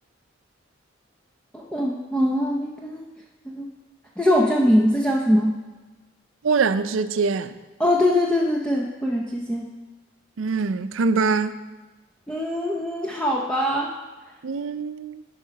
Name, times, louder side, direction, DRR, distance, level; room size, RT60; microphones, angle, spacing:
voice 1, 1.5-3.0 3.5-3.7 4.2-5.6 7.8-9.7 12.3-13.9, equal, 5° left, 0.6 m, -22 dB
voice 2, 6.4-7.6 10.4-11.6 14.4-15.2, right 4 dB, 85° right, 0.5 m, -23 dB
11.0 x 5.0 x 5.8 m
head